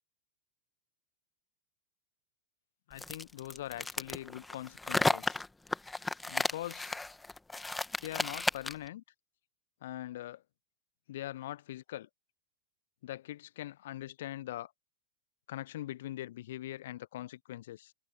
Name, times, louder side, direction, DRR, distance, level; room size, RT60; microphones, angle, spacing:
voice 1, 2.9-5.4 6.3-7.0 8.0-9.0 9.8-10.4 11.1-12.1 13.0-14.7 15.5-17.9, left 14 dB, 55° left, 0.9 m, -42 dB
sound 1, 3.0-8.9, left 2 dB, 5° left, 2.0 m, -33 dB
figure-of-eight pair, 90°, 0 cm